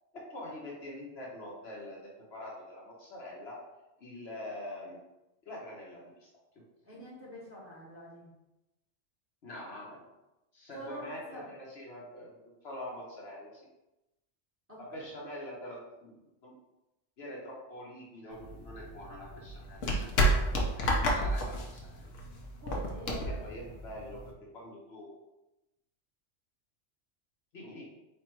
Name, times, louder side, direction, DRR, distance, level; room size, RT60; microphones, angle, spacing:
voice 1, 0.3-3.6 4.0-5.0 5.4-6.3 9.4-10.0 10.5-13.6 14.8-16.5 17.2-22.1 23.1-25.1 27.5-27.8, left 1 dB, 55° left, -3 dB, 1.1 m, -45 dB
voice 2, 6.8-8.3 10.7-11.5 14.7-14.8 22.6-23.4, equal, 10° right, -7 dB, 1.3 m, -45 dB
sound 1, 18.3-24.3, equal, 75° left, 1.2 m, -30 dB
4.4 x 2.5 x 4.4 m, 0.95 s
omnidirectional pair, 1.3 m